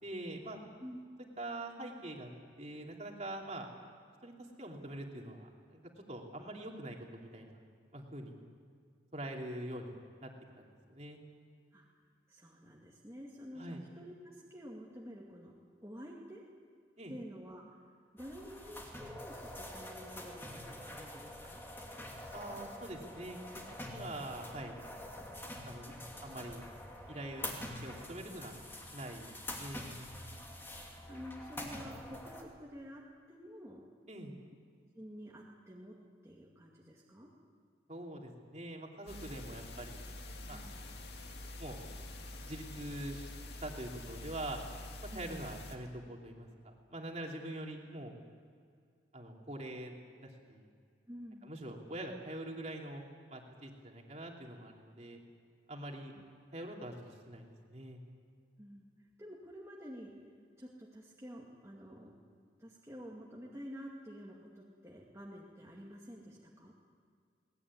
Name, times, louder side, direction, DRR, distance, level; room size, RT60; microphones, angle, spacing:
voice 1, 0.0-0.6 1.4-2.3 2.6-3.7 4.2-4.3 4.6-5.8 6.1-7.6 7.9-8.4 9.1-9.9 10.2-10.3 10.6-11.2 13.5-13.8 17.0-17.1 22.3-24.8 25.6-25.9 26.2-26.7 27.1-29.3 29.5-29.8 34.1-34.4 37.9-40.0 40.5-40.8 41.6-41.8 42.4-43.3 43.6-44.6 45.1-48.1 49.1-49.9 50.2-50.7 51.4-53.0 53.3-55.2 55.7-56.1 56.5-58.0, right 1 dB, 35° right, 1 dB, 3.0 m, -44 dB
voice 2, 12.3-15.5 15.8-16.4 17.1-17.6 18.1-21.6 31.1-33.0 33.3-33.8 34.9-36.0 36.2-37.3 40.5-40.8 45.1-45.3 51.1-51.5 58.6-58.9 59.2-60.1 60.6-62.1 62.6-66.7, equal, 15° right, -4 dB, 2.3 m, -49 dB
sound 1, 18.2-32.4, left 1 dB, 10° left, 2.5 m, -46 dB
sound 2, 39.1-45.8, left 1 dB, 60° left, 2.4 m, -46 dB
21.0 x 19.5 x 9.8 m, 2.2 s
head